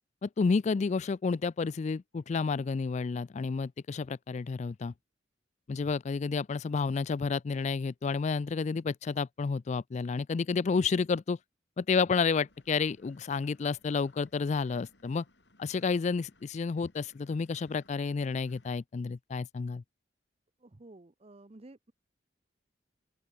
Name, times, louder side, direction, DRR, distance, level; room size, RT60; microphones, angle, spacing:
voice 1, 0.2-4.9 5.7-11.4 11.8-15.2 15.6-19.8, left 4 dB, 40° left, 0.3 m, -30 dB
sound 1, 12.5-18.8, left 2 dB, 70° left, 7.9 m, -64 dB
voice 2, 20.6-21.9, right 2 dB, 35° right, 0.8 m, -52 dB
open air
head